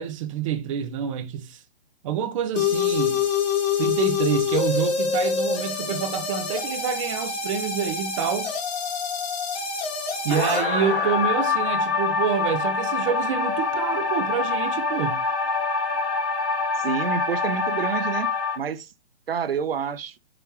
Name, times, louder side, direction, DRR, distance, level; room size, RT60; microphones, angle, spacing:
voice 1, 0.0-1.6 2.0-3.2 3.8-8.5 10.2-15.2, right 8 dB, 30° right, 1.0 m, -27 dB
sound 1, 2.6-18.6, left 5 dB, 40° left, 2.7 m, -25 dB
voice 2, 16.8-18.3 18.6-18.9 19.3-20.2, right 6 dB, 65° right, 0.7 m, -28 dB
9.8 x 3.3 x 3.1 m
figure-of-eight pair, 130°, 32 cm